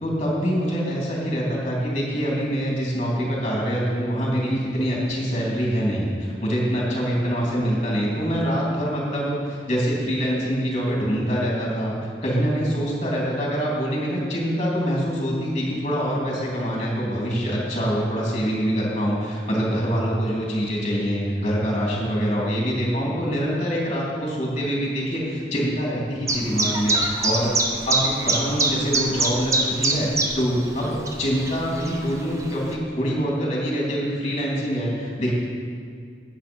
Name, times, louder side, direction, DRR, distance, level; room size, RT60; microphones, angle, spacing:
voice 1, 0.0-27.5 27.9-35.3, equal, 35° left, -4 dB, 3.1 m, -25 dB
Chirp tweet, 26.3-32.7, right 2 dB, 20° right, 0.7 m, -25 dB
10.5 x 8.9 x 5.5 m, 2.2 s
head